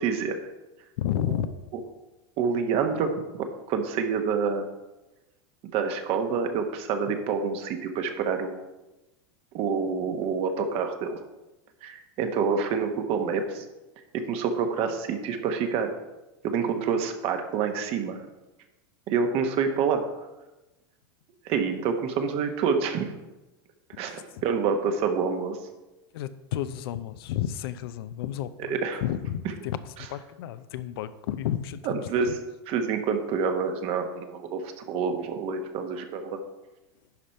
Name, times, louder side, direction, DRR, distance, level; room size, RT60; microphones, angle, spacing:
voice 1, 0.0-0.4 1.7-1.8 2.4-3.1 3.7-4.6 5.7-8.6 9.5-11.2 11.8-13.6 14.1-15.9 16.4-18.2 19.1-20.1 21.4-23.1 24.0-25.6 28.7-29.0 31.9-32.4 32.7-36.4, right 5 dB, 50° right, 6 dB, 1.3 m, -27 dB
voice 2, 1.0-1.5 26.1-32.4, left 11 dB, 75° left, 13 dB, 0.6 m, -32 dB
10.5 x 5.1 x 4.4 m, 1.0 s
hypercardioid pair, 115°, 13 cm